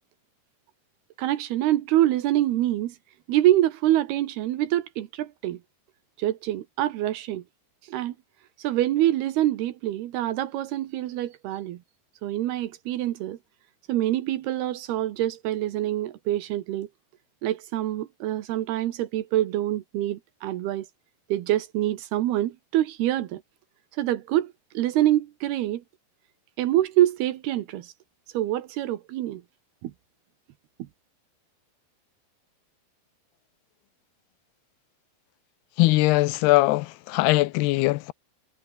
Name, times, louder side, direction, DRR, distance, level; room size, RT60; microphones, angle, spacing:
voice 1, 1.2-3.0 3.3-5.6 6.2-7.4 7.9-8.2 8.6-11.8 12.2-13.4 13.9-16.9 17.4-20.9 21.3-23.4 24.0-25.8 26.6-27.9 28.3-29.4 29.8-29.9, right 13 dB, 75° right, 3.0 m, -25 dB
voice 2, 35.8-38.1, left 20 dB, 80° left, 2.5 m, -21 dB
omnidirectional pair, 5.0 m